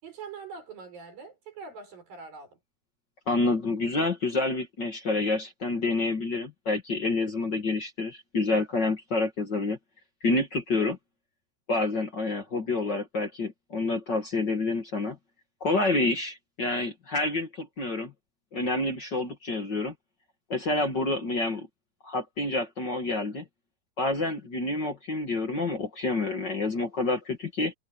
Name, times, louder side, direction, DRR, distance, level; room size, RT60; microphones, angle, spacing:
voice 1, 0.0-2.6, right 5 dB, 90° right, 7.9 m, -43 dB
voice 2, 3.3-9.8 10.2-11.0 11.7-15.2 15.6-18.1 18.5-19.9 20.5-21.7 22.0-23.4 24.0-27.7, left 2 dB, 40° left, 2.0 m, -28 dB
omnidirectional pair, 3.9 m